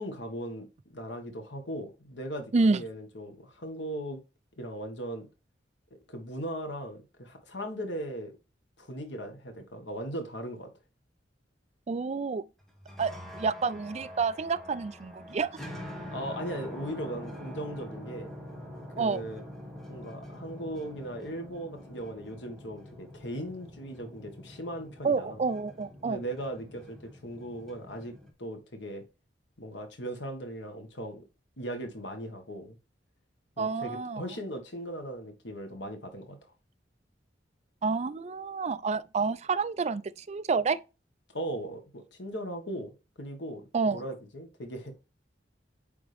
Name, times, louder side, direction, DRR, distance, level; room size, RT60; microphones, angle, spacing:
voice 1, 0.0-4.2 4.6-5.3 5.9-8.4 8.8-10.7 16.1-18.3 19.0-19.4 19.9-25.4 26.0-29.0 29.6-31.2 31.6-32.8 33.6-36.4 41.3-44.9, right 1 dB, 85° left, 1.6 m, -38 dB
voice 2, 11.9-12.5 13.0-15.5 19.0-19.2 25.0-26.2 33.6-34.2 37.8-40.8 43.7-44.0, right 4 dB, 40° right, 0.4 m, -29 dB
sound 1, 12.7-28.3, equal, ahead, 1.5 m, -45 dB
8.6 x 3.6 x 3.4 m
head